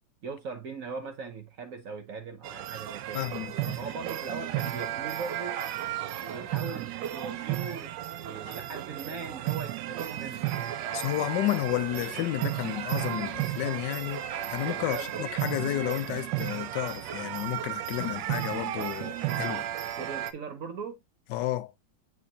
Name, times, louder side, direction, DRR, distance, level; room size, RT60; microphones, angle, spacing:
voice 1, 0.2-3.2 3.8-5.6 6.2-10.5 14.7-15.3 20.0-21.0, right 5 dB, 55° right, 1.0 m, -40 dB
Muay Thai fighter's entrance, 2.4-20.3, right 13 dB, 75° right, 1.3 m, -34 dB
voice 2, 3.1-3.8 8.5-8.6 10.9-19.7 21.3-21.7, left 15 dB, 75° left, 1.2 m, -32 dB
8.4 x 4.7 x 2.7 m
omnidirectional pair, 2.0 m